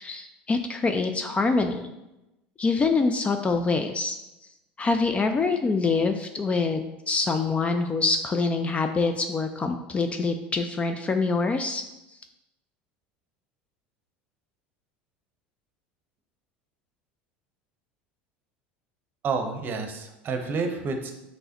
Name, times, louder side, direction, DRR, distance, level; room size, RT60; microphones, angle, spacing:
voice 1, 0.0-1.9 2.6-4.2 4.8-11.8, left 4 dB, 25° left, 6 dB, 0.4 m, -25 dB
voice 2, 19.2-21.1, right 4 dB, 40° right, 5 dB, 0.8 m, -29 dB
5.4 x 3.2 x 2.8 m, 0.95 s
hypercardioid pair, 90°, 5 cm